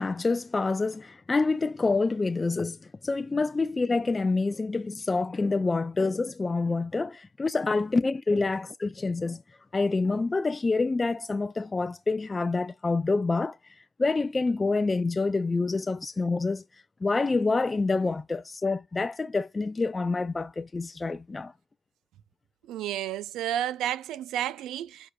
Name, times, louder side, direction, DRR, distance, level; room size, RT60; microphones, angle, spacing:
voice 1, 0.0-2.8 3.0-9.4 9.7-16.6 17.0-21.5, left 3 dB, 25° left, 0.4 m, -27 dB
voice 2, 22.7-25.1, right 11 dB, 85° right, 0.5 m, -31 dB
11.0 x 4.9 x 2.3 m
cardioid pair, 90°, 0 cm